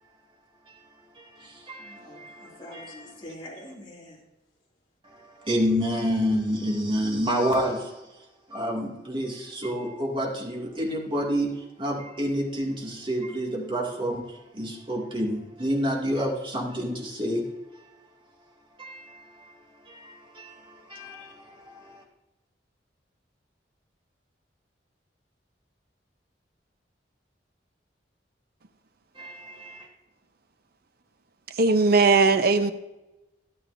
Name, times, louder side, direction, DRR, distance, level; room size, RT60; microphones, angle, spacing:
voice 1, 1.1-3.0 5.1-8.1 8.5-17.5 18.8-19.5 19.9-22.0 29.1-29.9, equal, 30° right, -2 dB, 2.3 m, -29 dB
voice 2, 1.8-4.2, left 1 dB, 30° left, -4 dB, 2.5 m, -44 dB
voice 3, 31.6-32.7, right 3 dB, 60° right, 10 dB, 0.8 m, -19 dB
13.0 x 12.5 x 2.7 m, 1.0 s
head